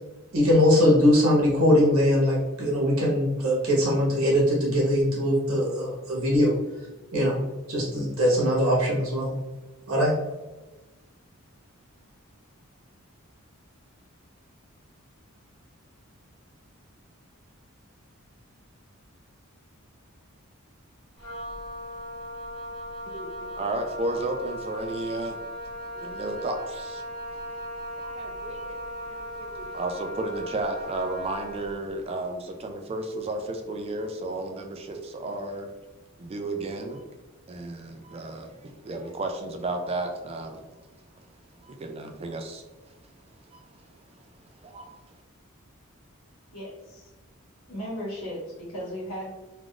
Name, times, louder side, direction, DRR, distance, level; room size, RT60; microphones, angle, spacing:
voice 1, 0.3-6.6 7.1-7.4 7.7-9.3 9.9-10.1, equal, 80° right, -4 dB, 1.2 m, -21 dB
Wind instrument woodwind instrument, 21.2-31.8, equal, ahead, 1.2 m, -37 dB
voice 2, 23.1-25.4 25.9-27.0 27.3-27.4 27.9-28.8 29.1-35.7 36.2-37.0 37.5-40.6 41.6-43.1 43.5-44.2 44.6-45.1, right 2 dB, 25° right, 5 dB, 0.3 m, -33 dB
voice 3, 46.5-47.1 47.7-49.3, equal, 70° left, -7 dB, 1.3 m, -36 dB
3.4 x 2.5 x 2.3 m, 1.1 s
head